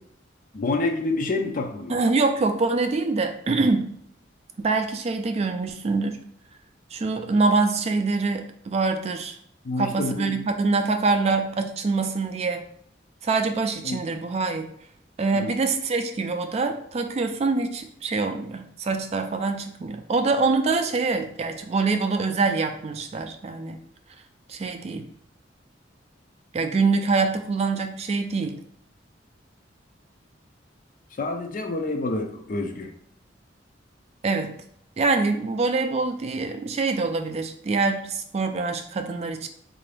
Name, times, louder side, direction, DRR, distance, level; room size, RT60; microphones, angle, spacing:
voice 1, 0.5-1.9 9.6-10.5 13.8-14.0 15.3-15.5 31.2-32.9, left 2 dB, 45° left, 5 dB, 0.5 m, -28 dB
voice 2, 1.9-4.0 4.6-6.2 6.9-9.4 9.8-12.6 13.2-14.7 15.2-23.8 24.5-25.1 26.5-28.6 34.2-34.6 35.0-39.5, right 3 dB, 35° right, 6 dB, 0.3 m, -25 dB
3.7 x 2.6 x 3.3 m, 0.67 s
head